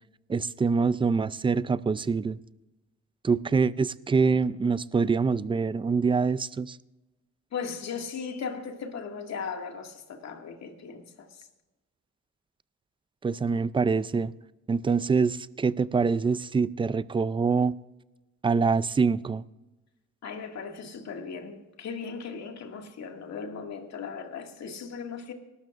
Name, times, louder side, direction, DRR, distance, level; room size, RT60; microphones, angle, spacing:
voice 1, 0.3-2.4 3.2-6.8 13.2-14.3 14.7-17.7 18.4-19.4, right 5 dB, 15° right, 0.4 m, -25 dB
voice 2, 7.5-11.3 20.2-25.3, left 6 dB, 60° left, 2.2 m, -37 dB
20.0 x 12.5 x 2.5 m
cardioid pair, 90°, 30 cm